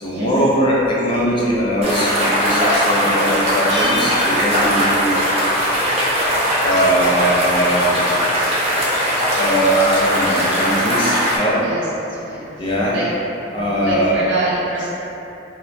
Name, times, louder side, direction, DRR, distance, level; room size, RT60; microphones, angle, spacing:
voice 1, 0.0-5.2 6.6-8.0 9.4-11.6 12.6-13.0 13.5-14.2, right 1 dB, 25° left, -6 dB, 0.4 m, -20 dB
sound 1, 1.8-11.4, equal, 35° right, 0.6 m, -19 dB
Bell, 3.7-5.5, left 2 dB, 75° left, 0.5 m, -31 dB
voice 2, 11.6-13.0 13.5-14.9, right 2 dB, 85° right, -9 dB, 0.5 m, -26 dB
3.1 x 2.1 x 2.6 m, 2.9 s
head